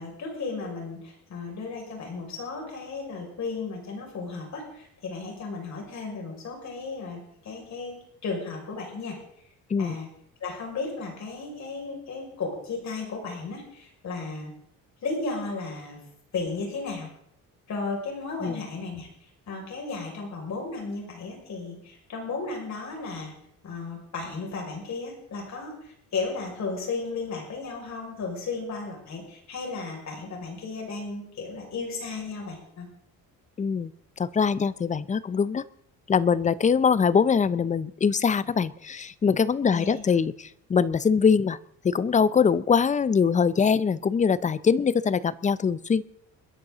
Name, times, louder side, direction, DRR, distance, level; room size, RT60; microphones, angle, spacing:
voice 1, 0.0-9.2 9.8-10.1 10.4-14.5 15.0-16.0 16.3-17.1 17.7-19.1 19.5-23.3 23.6-32.9 39.7-40.0, left 4 dB, 50° left, 0 dB, 5.9 m, -34 dB
voice 2, 33.6-33.9 34.2-35.6 36.1-41.6 41.8-46.0, left 6 dB, 20° left, 18 dB, 0.5 m, -23 dB
29.5 x 10.5 x 3.9 m, 0.72 s
cardioid pair, 140°, 37 cm